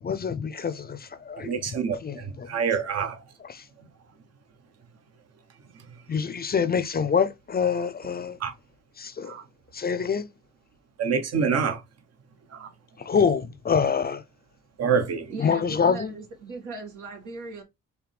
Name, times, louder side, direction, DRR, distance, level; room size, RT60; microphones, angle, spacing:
voice 1, 0.0-1.5 2.0-2.5 3.5-3.6 6.1-8.4 9.0-9.3 9.7-10.3 13.0-14.2 15.4-16.1, left 6 dB, 30° left, 0.6 m, -26 dB
voice 2, 1.4-3.2 8.4-8.5 9.2-9.4 11.0-11.8 12.5-12.7 14.8-15.3, right 6 dB, 55° right, 1.2 m, -26 dB
voice 3, 15.3-17.6, right 3 dB, 80° right, 2.2 m, -38 dB
4.9 x 3.2 x 3.4 m
cardioid pair, 90°, 30 cm